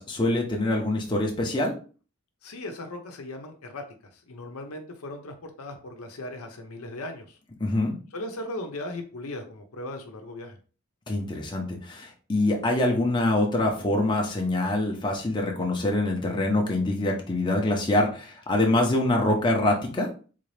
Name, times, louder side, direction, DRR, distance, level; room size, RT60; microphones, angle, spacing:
voice 1, 0.0-1.7 7.6-7.9 11.1-20.1, left 1 dB, 20° left, 0 dB, 0.7 m, -25 dB
voice 2, 2.4-3.8 4.1-7.4 8.1-10.6, left 1 dB, 80° left, 5 dB, 0.7 m, -38 dB
3.7 x 2.7 x 3.3 m, 0.37 s
head